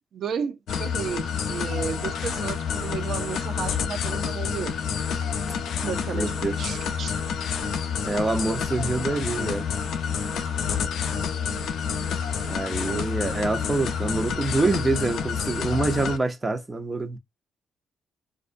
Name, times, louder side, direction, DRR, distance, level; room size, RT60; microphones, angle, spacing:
voice 1, 0.1-4.8 5.8-7.1, right 7 dB, 60° right, 0.5 m, -33 dB
sound 1, 0.7-16.2, left 6 dB, 75° left, 0.6 m, -28 dB
voice 2, 6.1-6.6 8.0-9.7 12.5-17.2, right 3 dB, 20° right, 0.8 m, -26 dB
3.7 x 2.4 x 2.5 m
cardioid pair, 90°, 0 cm